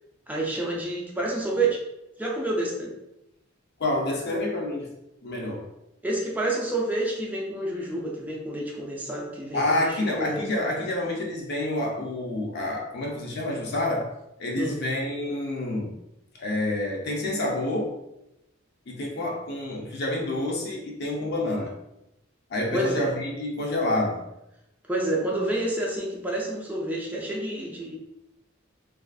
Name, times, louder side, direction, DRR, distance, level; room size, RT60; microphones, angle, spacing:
voice 1, 0.3-1.8 2.2-2.9 6.0-10.4 14.6-14.8 22.7-23.1 24.9-28.0, right 2 dB, 10° right, -3 dB, 0.4 m, -28 dB
voice 2, 3.8-4.9 5.2-5.7 9.5-14.1 14.4-16.0 16.3-18.0 18.9-21.8 22.5-24.3, left 1 dB, 55° left, -1 dB, 0.5 m, -28 dB
2.4 x 2.4 x 2.3 m, 0.88 s
head